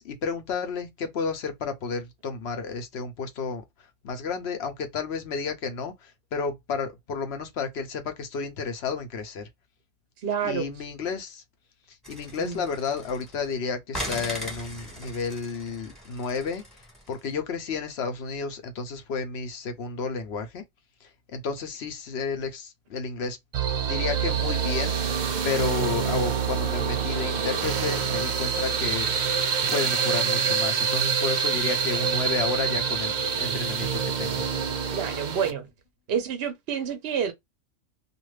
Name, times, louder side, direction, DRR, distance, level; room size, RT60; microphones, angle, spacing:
voice 1, 0.0-9.5 10.4-11.4 11.9-16.6 17.1-20.6 21.0-23.4 23.8-25.2 25.4-29.1 29.7-34.4, left 5 dB, 60° left, 0.9 m, -31 dB
voice 2, 10.2-10.7 12.4-12.6 34.9-35.7 36.1-37.3, right 7 dB, 60° right, 0.7 m, -28 dB
sound 1, 12.0-13.5 13.9-17.2, equal, ahead, 1.3 m, -39 dB
sound 2, 23.5-35.5, right 6 dB, 85° right, 0.4 m, -26 dB
2.5 x 2.5 x 3.1 m
omnidirectional pair, 1.3 m